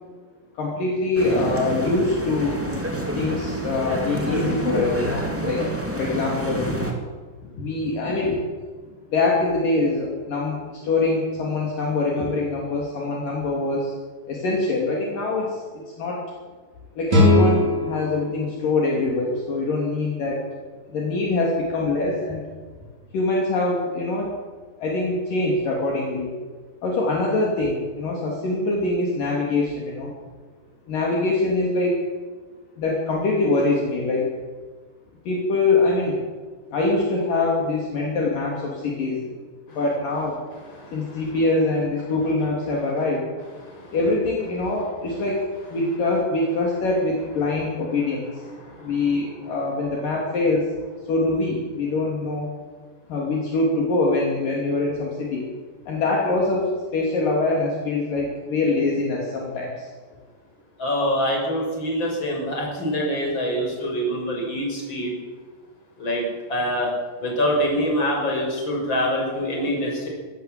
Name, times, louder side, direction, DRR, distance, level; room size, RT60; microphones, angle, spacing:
voice 1, 0.5-2.6 3.1-7.0 7.4-8.4 9.1-14.0 14.3-16.2 17.0-20.4 20.9-22.4 23.1-24.3 24.8-26.3 26.8-30.1 30.9-32.0 32.8-34.3 35.3-36.2 36.7-39.3 39.7-40.4 40.9-43.3 43.9-48.3 48.8-50.7 51.1-52.5 53.1-55.5 55.9-59.9, left 2 dB, 55° left, -2 dB, 4.4 m, -24 dB
sound 1, 1.1-6.9, right 1 dB, 5° right, 2.2 m, -28 dB
sound 2, 17.1-20.1, left 1 dB, 45° right, 5.8 m, -22 dB
voice 2, 60.8-65.1 66.0-66.9 67.2-70.1, equal, 25° left, 0 dB, 6.4 m, -24 dB
21.5 x 16.5 x 7.8 m, 1.5 s
omnidirectional pair, 4.7 m